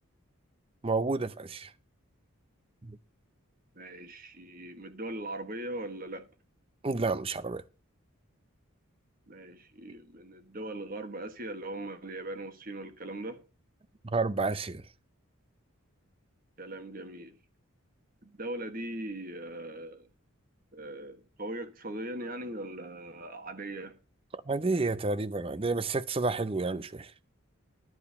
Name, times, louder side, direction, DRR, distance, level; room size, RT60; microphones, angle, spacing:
voice 1, 0.8-1.7 2.8-3.0 6.8-7.6 14.0-14.8 24.5-27.1, right 3 dB, 25° right, 0.5 m, -30 dB
voice 2, 3.7-6.3 9.3-13.4 16.6-17.4 18.2-20.1 20.7-24.0, right 1 dB, 40° right, 1.4 m, -40 dB
12.0 x 4.6 x 8.4 m
head